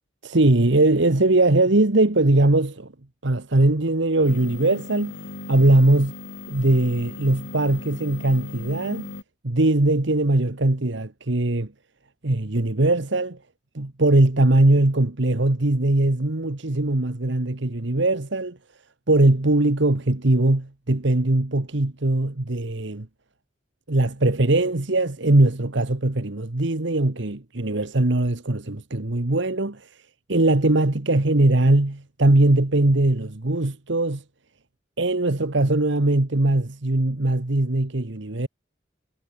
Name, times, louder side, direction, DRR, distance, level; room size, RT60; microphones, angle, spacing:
voice 1, 0.2-2.9 3.2-5.1 5.5-6.1 6.5-9.1 9.4-11.7 12.2-13.4 13.7-18.6 19.1-23.1 23.9-29.9 30.3-34.2 35.0-38.5, right 2 dB, 65° right, 1.4 m, -20 dB
sound 1, 4.2-9.2, left 2 dB, 75° left, 4.5 m, -38 dB
head